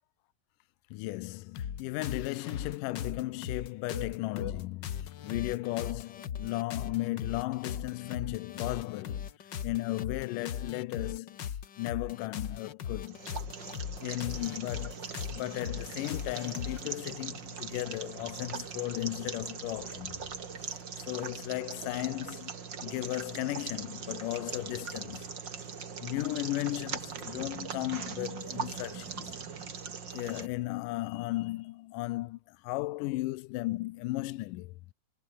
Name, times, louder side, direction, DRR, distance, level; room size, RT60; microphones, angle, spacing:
voice 1, 0.9-9.3 9.6-11.4 11.8-13.2 14.0-15.0 15.3-20.2 20.6-22.5 22.8-25.3 26.0-29.4 30.1-34.7, left 19 dB, 75° left, 2.2 m, -35 dB
sound 1, 1.5-17.0, left 8 dB, 60° left, 1.2 m, -39 dB
sound 2, 13.0-30.5, right 6 dB, 35° right, 2.4 m, -41 dB
Animal, 26.6-30.6, right 10 dB, 85° right, 3.8 m, -48 dB
omnidirectional pair, 4.1 m